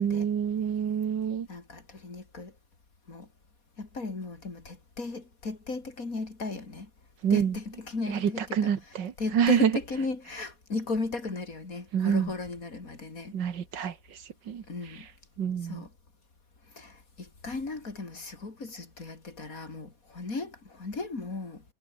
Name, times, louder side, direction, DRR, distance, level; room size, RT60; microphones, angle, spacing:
voice 1, 0.0-1.5 7.2-7.6 8.1-9.8 11.9-12.3 13.3-14.6 14.9-15.0 15.4-15.9, right 8 dB, 75° right, 2.2 m, -27 dB
voice 2, 1.5-2.5 3.1-3.3 3.8-6.9 7.3-8.7 9.2-13.3 14.7-15.1 15.6-15.9 16.8-21.6, left 3 dB, 50° left, 3.9 m, -36 dB
omnidirectional pair, 1.9 m